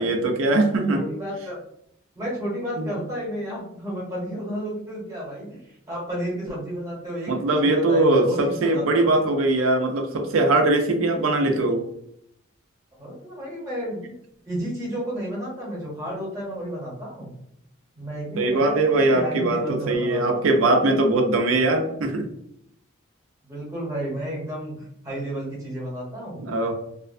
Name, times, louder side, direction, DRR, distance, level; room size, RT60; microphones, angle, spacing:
voice 1, 0.0-1.0 2.8-2.9 7.3-11.8 18.4-22.3 26.4-26.7, right 2 dB, 85° right, 3 dB, 0.5 m, -21 dB
voice 2, 0.9-1.6 2.1-9.1 13.0-14.1 14.5-17.3 18.0-20.5 23.4-26.4, equal, 15° right, -5 dB, 0.9 m, -32 dB
2.5 x 2.1 x 2.5 m, 0.73 s
head